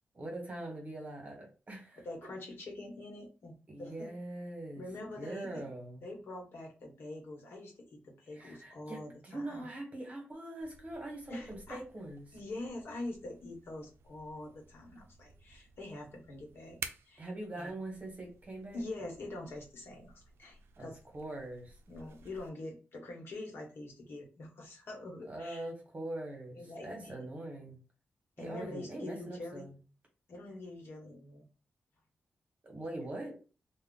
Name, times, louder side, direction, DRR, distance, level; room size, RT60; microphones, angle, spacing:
voice 1, 0.1-2.0 3.7-4.8 5.2-6.0 8.3-12.3 17.2-18.8 20.8-20.9 21.1-21.8 25.3-27.8 28.4-29.8 32.6-33.4, right 1 dB, 35° right, 1 dB, 1.3 m, -42 dB
voice 2, 2.0-4.1 4.7-5.7 6.0-9.7 11.3-11.8 12.3-16.8 17.1-17.2 17.5-17.7 18.7-21.0 21.9-25.7 26.5-27.4 28.4-29.7 30.3-31.4, left 2 dB, 70° left, 0 dB, 1.1 m, -45 dB
sound 1, 10.6-22.5, right 6 dB, 85° right, 0.3 m, -53 dB
2.4 x 2.3 x 3.7 m, 0.34 s
cardioid pair, 80°, 4 cm